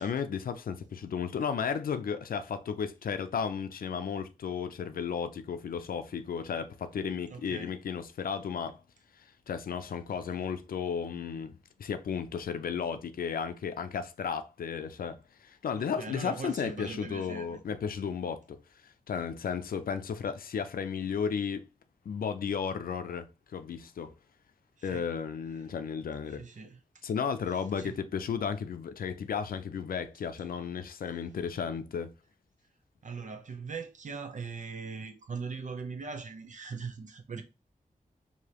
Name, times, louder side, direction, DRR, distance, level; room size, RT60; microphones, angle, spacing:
voice 1, 0.0-8.8 9.2-11.5 11.8-21.7 22.1-23.3 23.5-24.1 24.8-26.5 27.0-32.1, left 6 dB, 90° left, 0.5 m, -34 dB
voice 2, 7.3-7.7 15.8-17.6 24.8-25.1 26.3-26.8 27.8-28.0 33.0-37.4, right 5 dB, 60° right, 0.8 m, -40 dB
4.8 x 2.8 x 2.9 m
wide cardioid pair, 95°, 15 cm